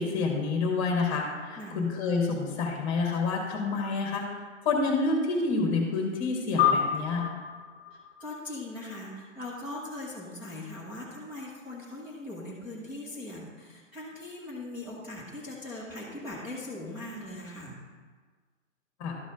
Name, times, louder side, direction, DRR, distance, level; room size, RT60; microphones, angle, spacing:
voice 1, 0.0-4.2 4.6-7.2 19.0-19.1, left 3 dB, 25° left, 1 dB, 1.6 m, -28 dB
sound 1, 6.6-9.3, left 8 dB, 45° left, 0.9 m, -29 dB
voice 2, 7.9-17.8, left 2 dB, 5° right, -9 dB, 0.8 m, -40 dB
12.0 x 4.1 x 5.1 m, 1.5 s
figure-of-eight pair, 125°, 39 cm